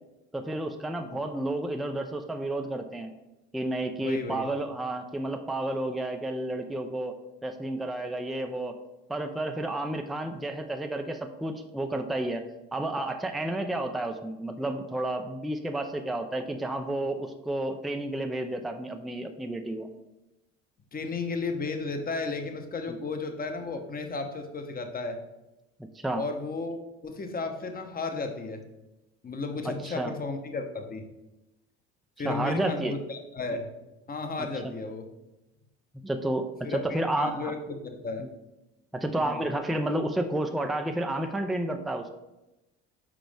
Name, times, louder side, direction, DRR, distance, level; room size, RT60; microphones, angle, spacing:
voice 1, 0.3-3.1 3.5-7.1 7.4-8.8 9.1-12.4 12.7-19.9 22.9-23.0 25.8-26.2 29.6-30.1 32.2-33.0 34.4-34.7 36.0-37.5 38.2-38.3 38.9-42.1, right 1 dB, ahead, 5 dB, 0.5 m, -31 dB
voice 2, 4.0-4.5 20.9-25.2 26.2-26.8 27.0-28.6 29.2-31.0 32.2-33.7 34.1-35.0 36.6-38.3 39.1-39.4, left 3 dB, 25° left, 6 dB, 1.0 m, -34 dB
6.1 x 4.9 x 3.4 m, 0.97 s
hypercardioid pair, 70°, 33 cm